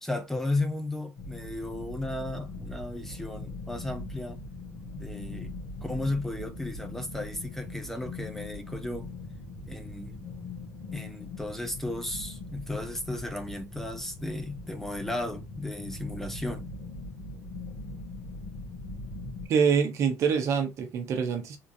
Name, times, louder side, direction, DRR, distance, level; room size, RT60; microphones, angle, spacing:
voice 1, 0.0-4.4 5.0-5.5 5.8-9.2 9.7-10.2 10.9-16.7, left 2 dB, 5° left, 0.7 m, -34 dB
sound 1, 1.2-19.5, left 2 dB, 55° left, 1.5 m, -41 dB
voice 2, 19.5-21.6, right 6 dB, 55° right, 0.9 m, -25 dB
3.7 x 3.0 x 2.6 m
cardioid pair, 120°, 6 cm